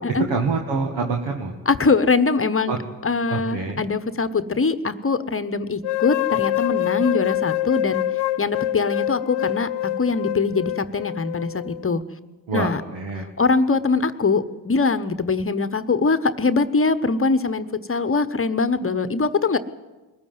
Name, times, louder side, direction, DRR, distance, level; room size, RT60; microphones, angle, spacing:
voice 1, 0.3-1.5 2.7-2.8 3.3-3.8 12.5-13.3, right 4 dB, 70° right, 2 dB, 2.1 m, -26 dB
voice 2, 1.7-8.0 8.4-9.7 10.0-12.0 12.5-12.8 13.4-19.6, left 4 dB, 25° left, 13 dB, 1.1 m, -22 dB
sound 1, 5.8-11.8, left 14 dB, 60° left, 0.6 m, -25 dB
21.5 x 14.0 x 9.4 m, 1.2 s
supercardioid pair, 55°, 47 cm